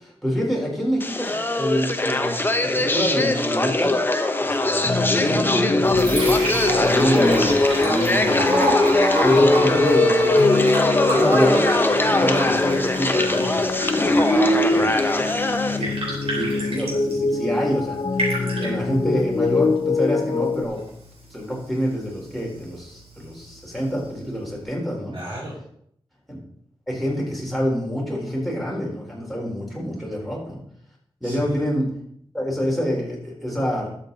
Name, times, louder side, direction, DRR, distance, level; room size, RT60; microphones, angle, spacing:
voice 1, 0.0-4.0 4.4-10.3 11.1-11.7 12.1-13.7 14.2-15.2 15.7-20.8 21.3-25.2 26.3-26.4 26.9-30.6 31.2-31.9 32.3-34.0, equal, ahead, -4 dB, 4.3 m, -27 dB
sound 1, 1.0-15.8, left 1 dB, 20° left, 0.9 m, -20 dB
sound 2, 4.8-20.7, left 4 dB, 45° left, 0.5 m, -26 dB
Liquid, 5.6-24.6, right 1 dB, 80° right, 4.3 m, -31 dB
voice 2, 13.9-14.5 25.1-25.6 31.2-31.5, equal, 55° right, -8 dB, 4.9 m, -37 dB
12.5 x 7.4 x 4.1 m, 0.68 s
wide cardioid pair, 85°, 10 cm